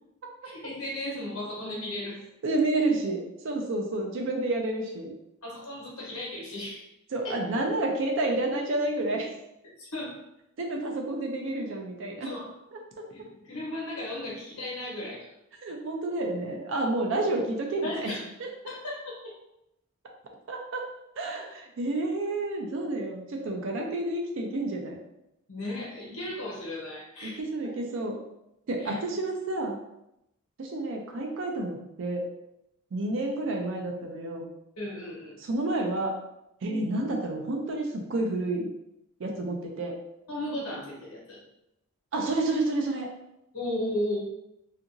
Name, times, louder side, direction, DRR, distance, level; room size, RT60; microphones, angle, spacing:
voice 1, 0.4-2.2 5.4-6.8 7.2-7.4 9.8-10.2 12.2-12.5 13.1-15.3 17.8-18.3 18.7-19.3 25.5-27.4 28.8-29.0 34.8-35.4 40.3-41.4 43.5-44.2, left 1 dB, 85° left, -4 dB, 1.0 m, -35 dB
voice 2, 2.4-5.1 7.1-9.3 10.6-12.3 12.7-12.8 15.6-18.5 20.5-20.8 21.2-25.0 27.2-28.2 28.7-29.8 30.6-32.2 32.9-34.5 35.4-36.1 36.6-38.7 39.2-40.0 42.1-43.1, right 2 dB, 55° right, 1 dB, 0.4 m, -30 dB
2.8 x 2.5 x 2.5 m, 0.84 s
head